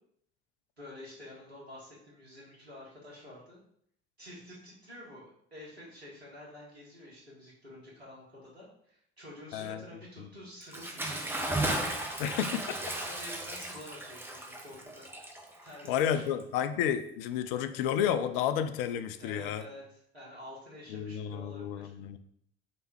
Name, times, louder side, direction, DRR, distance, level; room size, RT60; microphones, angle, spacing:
voice 1, 0.8-3.6 4.2-11.5 12.9-15.1 15.6-16.2 19.2-21.9, left 1 dB, 90° right, -5 dB, 1.3 m, -49 dB
voice 2, 9.5-9.8 10.2-10.3 12.2-12.8 15.9-19.6 20.9-22.2, left 9 dB, 60° left, 11 dB, 0.4 m, -31 dB
Bathtub (filling or washing) / Splash splatter, 10.6-16.6, right 1 dB, 5° right, 0.7 m, -35 dB
3.3 x 3.0 x 4.5 m, 0.68 s
figure-of-eight pair, 55°, 31 cm